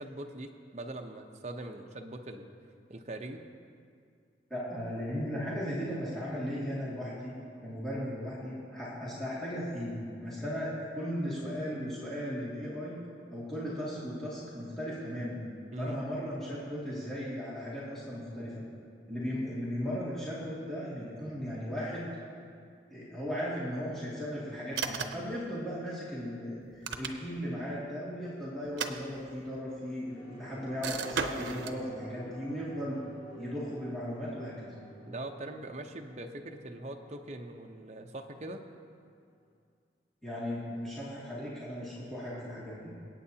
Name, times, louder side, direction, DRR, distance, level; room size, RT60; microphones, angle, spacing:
voice 1, 0.0-2.5 2.9-3.4 15.7-16.0 35.1-38.6, right 1 dB, 35° right, 3 dB, 0.7 m, -42 dB
voice 2, 4.5-7.3 7.6-13.0 13.3-15.4 15.8-18.6 19.1-22.1 22.9-26.6 26.9-32.9 33.4-34.7 40.2-42.9, equal, ahead, -10 dB, 2.2 m, -36 dB
sound 1, 24.7-25.3 26.6-27.5 28.6-29.6 30.8-31.8, right 5 dB, 85° right, 0.7 m, -36 dB
sound 2, 30.0-39.0 39.4-39.5, right 1 dB, 40° left, 2.2 m, -52 dB
25.0 x 8.6 x 2.8 m, 2.3 s
head